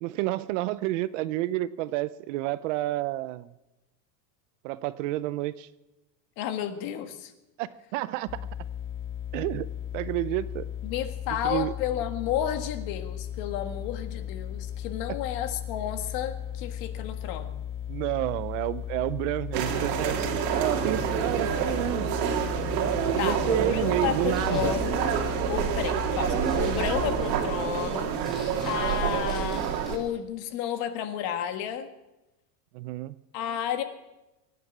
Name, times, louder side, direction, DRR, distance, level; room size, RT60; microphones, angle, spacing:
voice 1, 0.0-3.5 4.6-5.7 7.6-8.4 9.3-9.7 9.9-10.7 11.4-11.7 17.9-20.3 20.5-22.2 23.1-24.7 27.0-27.1 29.0-29.3 32.7-33.1, right 16 dB, 50° right, 16 dB, 0.5 m, -30 dB
voice 2, 6.4-7.3 10.8-17.5 23.2-25.0 25.5-28.1 28.6-31.9 33.3-33.8, left 10 dB, 45° left, 8 dB, 1.5 m, -32 dB
sound 1, 8.3-27.3, left 10 dB, 25° left, 0.6 m, -36 dB
sound 2, 19.5-30.0, right 8 dB, 80° right, 2.5 m, -28 dB
sound 3, 24.1-30.1, equal, ahead, 4.9 m, -49 dB
23.5 x 9.6 x 6.0 m, 1.0 s
supercardioid pair, 165°, 49 cm